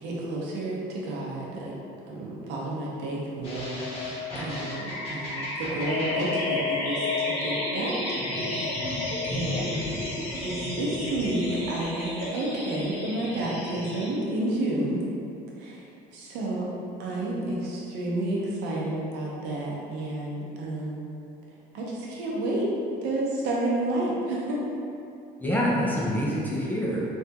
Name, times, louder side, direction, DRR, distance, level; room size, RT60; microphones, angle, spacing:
voice 1, 0.0-1.7 2.1-8.4 8.8-9.8 10.3-15.0 15.6-15.8 16.1-16.7 17.0-21.1 21.7-22.7 23.0-24.6, right 1 dB, 75° right, -4 dB, 0.7 m, -30 dB
sound 1, 3.4-14.1, left 2 dB, 35° left, 0.8 m, -31 dB
voice 2, 9.7-10.1 25.4-27.0, equal, 10° left, -5 dB, 0.3 m, -27 dB
3.4 x 2.3 x 2.7 m, 2.6 s
cardioid pair, 155°, 18 cm